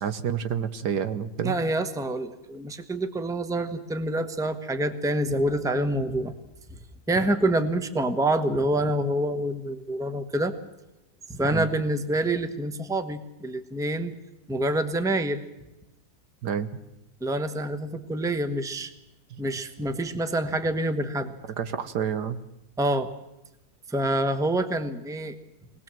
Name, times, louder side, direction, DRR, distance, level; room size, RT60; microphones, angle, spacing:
voice 1, 0.0-1.6 7.2-7.3 11.5-11.7 16.4-16.7 21.5-22.4, right 8 dB, 75° right, 11 dB, 1.7 m, -29 dB
voice 2, 1.4-6.3 7.1-10.5 11.3-14.2 14.5-15.4 17.2-18.9 19.4-21.3 22.8-23.1 23.9-25.3, right 1 dB, ahead, 8 dB, 1.0 m, -27 dB
24.0 x 19.0 x 7.6 m, 0.92 s
omnidirectional pair, 1.8 m